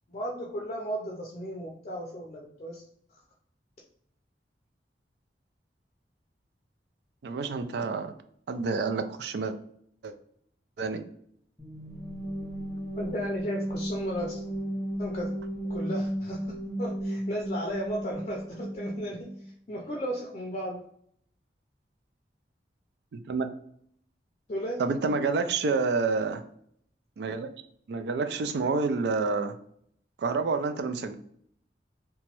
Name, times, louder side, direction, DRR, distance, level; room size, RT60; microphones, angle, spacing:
voice 1, 0.1-2.8 13.0-14.4 15.0-15.3 15.7-16.5 16.8-20.8 24.5-24.8, equal, 40° left, -2 dB, 0.5 m, -35 dB
voice 2, 7.2-8.1 8.5-9.5 10.0-10.1 10.8-11.0 23.1-23.5 24.8-26.4 27.2-27.5 27.9-29.6 30.2-31.1, right 4 dB, 65° right, 9 dB, 0.3 m, -28 dB
sound 1, 11.6-19.4, right 1 dB, 5° right, 1.0 m, -34 dB
2.9 x 2.2 x 2.9 m, 0.66 s
head